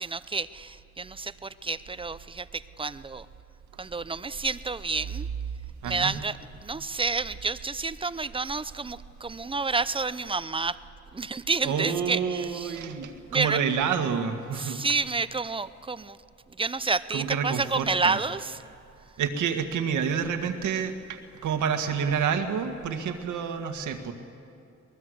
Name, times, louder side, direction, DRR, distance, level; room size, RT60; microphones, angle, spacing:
voice 1, 0.0-3.3 3.8-5.3 5.8-10.8 11.1-12.8 13.3-13.6 14.5-16.2 16.5-18.6, right 4 dB, 15° right, 15 dB, 0.6 m, -30 dB
voice 2, 5.8-6.2 11.6-14.8 17.1-18.2 19.2-24.1, right 7 dB, 75° right, 6 dB, 1.9 m, -28 dB
24.5 x 19.5 x 8.0 m, 2.6 s
cardioid pair, 90°, 30 cm